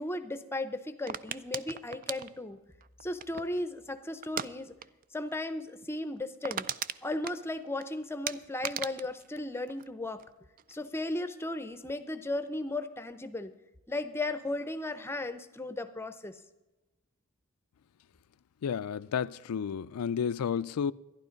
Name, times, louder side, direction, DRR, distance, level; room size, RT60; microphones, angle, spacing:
voice 1, 0.0-2.6 3.0-4.7 5.1-6.6 7.0-10.2 10.7-13.5 13.9-16.4, left 2 dB, 10° left, 0.6 m, -35 dB
sound 1, 1.1-3.6 4.2-4.5 4.8-5.0 5.3-5.4 5.8-5.9 6.2-7.8 8.3-10.3 10.6-11.0, right 9 dB, 40° right, 0.4 m, -38 dB
voice 2, 18.6-20.9, left 7 dB, 90° left, 0.4 m, -31 dB
12.0 x 11.5 x 5.2 m
head